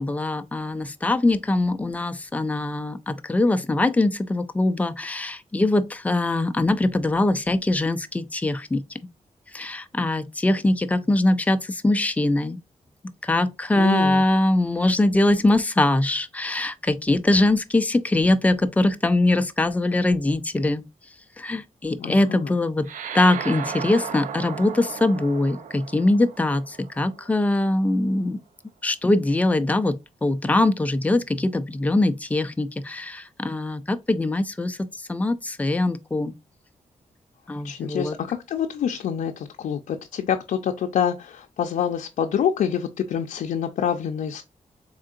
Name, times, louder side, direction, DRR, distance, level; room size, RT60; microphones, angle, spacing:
voice 1, 0.0-8.8 9.5-12.6 13.2-20.8 21.4-22.9 23.1-28.4 28.8-36.3 37.5-38.2, left 2 dB, 10° left, 0.3 m, -22 dB
voice 2, 13.7-14.2 22.0-22.5 37.6-44.4, left 8 dB, 85° left, 0.4 m, -26 dB
sound 1, 22.8-27.6, right 7 dB, 80° right, 0.5 m, -36 dB
3.6 x 3.6 x 2.4 m
wide cardioid pair, 145°, 13 cm